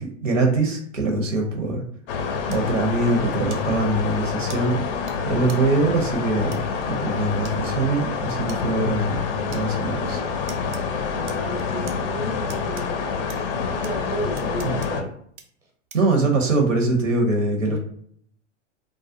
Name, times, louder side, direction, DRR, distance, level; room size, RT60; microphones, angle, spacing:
voice 1, 0.0-1.8 2.5-4.8 5.2-9.2 9.5-10.2 15.9-17.8, right 2 dB, 90° right, 2 dB, 0.9 m, -23 dB
sound 1, 2.1-15.0, left 5 dB, 50° left, 0.4 m, -27 dB
sound 2, 2.5-2.6 3.5-3.6 4.5-4.6 5.1-5.2 5.5-5.6 6.5-6.6 7.4-7.6 8.5-8.6 9.5-9.6 10.5-10.8 11.3-12.0 12.5-12.8 13.3-13.4 13.8-13.9 14.4-14.9 15.4-15.5 15.9-16.1, right 6 dB, 70° right, 0.6 m, -41 dB
voice 2, 11.2-13.0 13.7-15.1 17.6-17.8, right 1 dB, 10° right, -2 dB, 0.5 m, -33 dB
2.4 x 2.1 x 2.6 m, 0.64 s
hypercardioid pair, 110°, 37 cm